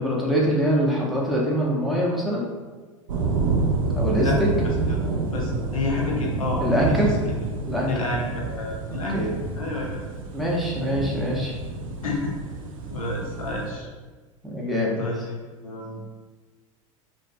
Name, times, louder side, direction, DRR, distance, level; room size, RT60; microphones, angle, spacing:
voice 1, 0.0-2.4 3.9-4.5 6.6-7.1 7.7-7.9 8.9-9.3 10.3-11.5 14.4-15.0, equal, ahead, -5 dB, 0.6 m, -24 dB
sound 1, 3.1-13.7, right 3 dB, 75° right, 0.4 m, -28 dB
voice 2, 4.2-4.7 5.3-7.0 7.9-9.2 9.5-10.0 12.0-12.4 12.9-13.9 15.0-15.4 15.6-16.0, left 2 dB, 85° left, -2 dB, 0.4 m, -29 dB
2.5 x 2.2 x 2.5 m, 1.3 s
figure-of-eight pair, 85°, 17 cm